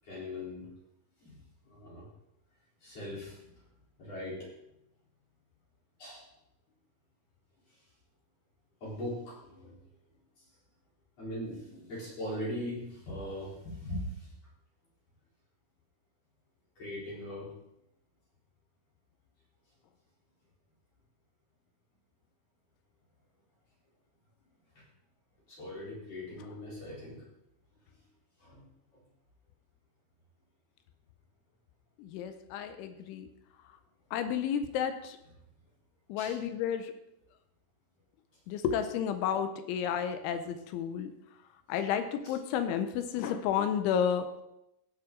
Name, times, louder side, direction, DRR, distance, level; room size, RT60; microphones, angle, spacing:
voice 1, 0.0-0.7 1.2-1.4 1.7-2.1 2.8-3.4 4.0-4.5 6.0-6.3 8.8-9.7 10.4-10.5 11.2-14.3 16.8-17.5 24.7-24.8 25.5-27.3 28.4-28.6 28.9-29.0 36.2-36.4 42.2-42.4, left 1 dB, 35° left, -5 dB, 4.6 m, -40 dB
voice 2, 32.0-33.3 34.1-35.2 36.1-36.9 38.5-41.1 41.7-44.3, left 8 dB, 80° left, 9 dB, 3.0 m, -31 dB
16.5 x 8.8 x 3.8 m, 0.84 s
omnidirectional pair, 5.7 m